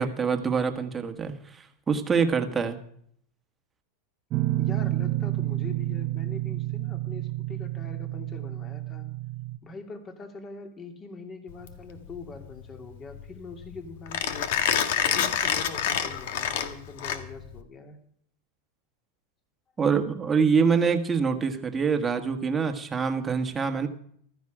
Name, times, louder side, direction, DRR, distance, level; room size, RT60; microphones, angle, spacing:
voice 1, 0.0-2.8 19.8-23.9, right 5 dB, 15° right, 5 dB, 1.6 m, -25 dB
Guitar, 4.3-9.6, right 16 dB, 40° right, 0.7 m, -29 dB
voice 2, 4.6-9.1 9.6-14.6 15.0-18.0, left 3 dB, 25° left, 5 dB, 2.6 m, -43 dB
Mechanisms, 11.5-17.6, left 9 dB, 70° left, 1.7 m, -28 dB
15.0 x 13.5 x 5.0 m, 0.64 s
supercardioid pair, 140°, 0 cm